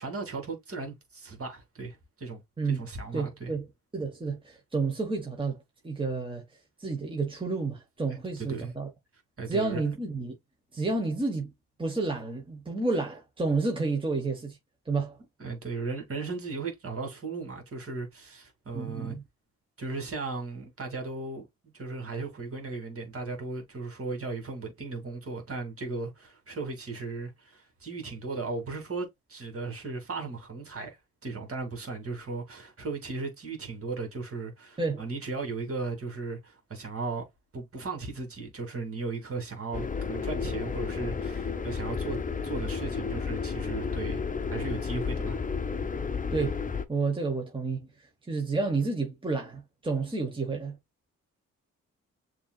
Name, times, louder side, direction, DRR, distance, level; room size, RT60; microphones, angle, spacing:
voice 1, 0.0-2.4 2.7-3.5 8.4-8.7 9.4-9.9 15.4-19.1 19.8-21.5 21.7-37.2 37.5-44.2 44.5-45.4, right 3 dB, 40° right, 2.4 m, -36 dB
voice 2, 3.1-3.7 3.9-5.6 5.8-6.4 6.8-8.9 9.5-10.3 10.7-11.5 11.8-14.6 14.8-15.2 18.7-19.2 34.8-35.0 46.3-46.6 46.9-47.9 48.3-50.8, right 3 dB, 15° right, 1.4 m, -30 dB
sound 1, 39.7-46.9, left 5 dB, 25° left, 0.8 m, -32 dB
7.0 x 3.0 x 2.3 m
supercardioid pair, 55°, 33 cm